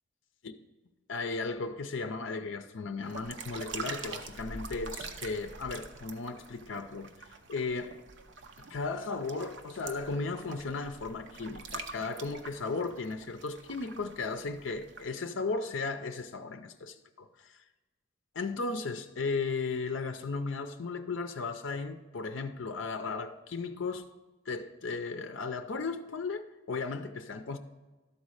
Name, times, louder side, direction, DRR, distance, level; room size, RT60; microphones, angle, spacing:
voice 1, 1.1-7.1 7.5-8.0 8.6-17.3 18.3-24.1 24.5-27.6, left 4 dB, 65° left, 0.6 m, -35 dB
sound 1, 3.0-15.1, right 4 dB, 60° right, 0.7 m, -45 dB
12.0 x 4.2 x 6.3 m
head